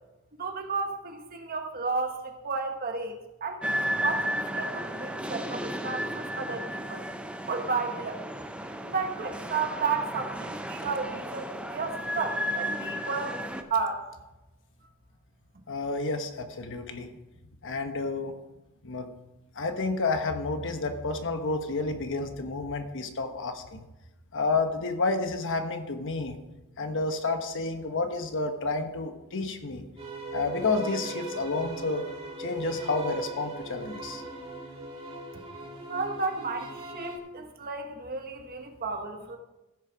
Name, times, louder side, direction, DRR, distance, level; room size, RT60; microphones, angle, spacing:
voice 1, 0.4-7.1 7.5-8.2 8.8-13.4 13.7-14.1 35.9-39.4, right 4 dB, 40° right, 5 dB, 1.3 m, -33 dB
sound 1, 3.6-13.6, equal, 5° right, 0.6 m, -33 dB
voice 2, 15.7-17.1 17.6-18.4 18.8-19.1 19.6-23.8 24.3-26.4 26.8-29.8 30.3-32.0 32.4-34.2, left 3 dB, 60° left, 7 dB, 1.1 m, -30 dB
sound 2, 30.0-37.2, right 2 dB, 25° right, 2.2 m, -39 dB
15.0 x 6.5 x 5.1 m, 1.0 s
head